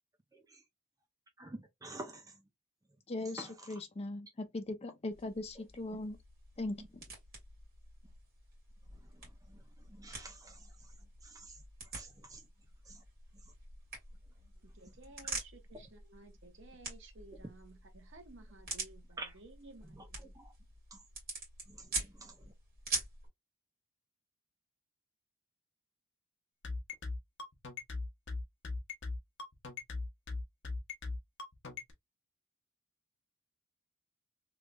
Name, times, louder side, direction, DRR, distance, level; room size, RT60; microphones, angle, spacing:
voice 1, 0.3-0.6 1.4-2.4 3.4-3.7 6.8-6.9 9.0-10.9 11.2-11.6 11.9-12.5 12.8-13.0 19.2-19.3 19.9-20.1 20.3-20.5 20.9-21.0 21.7-22.5, right 2 dB, 15° right, 0.5 m, -49 dB
voice 2, 3.1-6.2 6.6-7.0, left 2 dB, 30° left, 0.5 m, -39 dB
sound 1, 5.1-23.3, right 3 dB, 45° right, 2.1 m, -46 dB
voice 3, 14.6-20.4, right 3 dB, 60° right, 1.0 m, -56 dB
sound 2, 26.6-31.9, left 3 dB, 60° left, 0.9 m, -39 dB
3.2 x 3.2 x 2.3 m
head